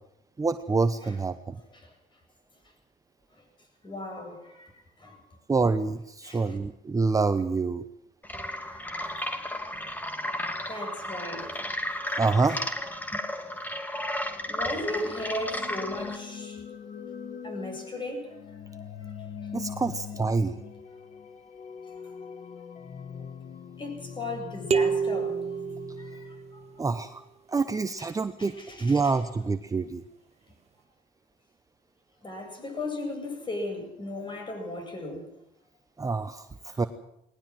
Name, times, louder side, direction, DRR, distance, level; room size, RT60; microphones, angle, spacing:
voice 1, 0.4-1.5 5.5-7.8 12.2-12.6 19.5-20.6 26.8-27.2 27.5-30.0 36.0-36.9, right 4 dB, 20° right, 10 dB, 1.0 m, -27 dB
voice 2, 3.8-4.7 5.0-5.2 6.2-6.6 8.6-8.8 10.7-11.5 12.5-12.6 13.1-13.2 14.4-16.6 17.4-18.3 19.4-19.5 23.8-25.4 26.0-27.1 28.0-28.1 28.4-29.2 32.2-35.3 36.7-36.8, left 2 dB, 30° left, 4 dB, 7.9 m, -36 dB
sound 1, 8.2-16.2, left 1 dB, 10° left, 2.5 m, -33 dB
sound 2, 15.1-27.0, left 7 dB, 45° left, 2.1 m, -42 dB
sound 3, 24.7-26.6, right 6 dB, 40° right, 1.4 m, -28 dB
19.5 x 19.5 x 7.7 m, 0.81 s
cardioid pair, 110°, 17 cm